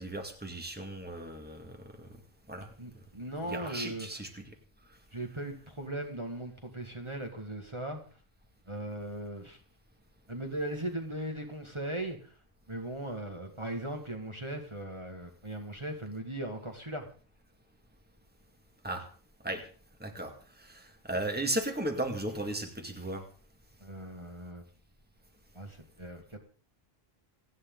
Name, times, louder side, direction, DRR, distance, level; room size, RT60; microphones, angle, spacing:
voice 1, 0.0-2.1 2.5-2.7 3.5-4.5 18.8-19.1 19.4-19.7 20.0-23.2, right 1 dB, 10° right, 4 dB, 2.2 m, -36 dB
voice 2, 2.8-4.2 5.1-8.0 8.7-9.6 10.3-12.3 12.7-17.1 23.8-24.7 25.5-26.4, right 1 dB, 30° right, 2 dB, 2.0 m, -38 dB
28.5 x 9.7 x 3.9 m, 0.42 s
omnidirectional pair, 1.0 m